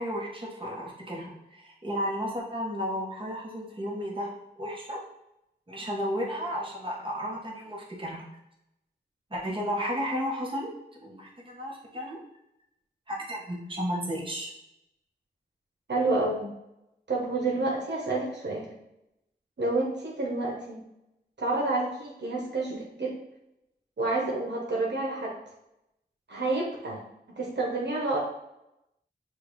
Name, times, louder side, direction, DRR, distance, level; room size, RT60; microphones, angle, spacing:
voice 1, 0.0-4.3 4.6-5.0 5.7-8.2 9.3-10.7 11.0-12.2 13.1-14.5, equal, 30° right, -4 dB, 1.4 m, -33 dB
voice 2, 15.9-16.5 17.1-18.7 19.6-20.8 21.4-23.1 24.0-25.3 26.3-27.0 27.4-28.2, right 2 dB, 75° right, -3 dB, 1.1 m, -29 dB
6.3 x 2.6 x 3.1 m, 0.86 s
cardioid pair, 45°, 18 cm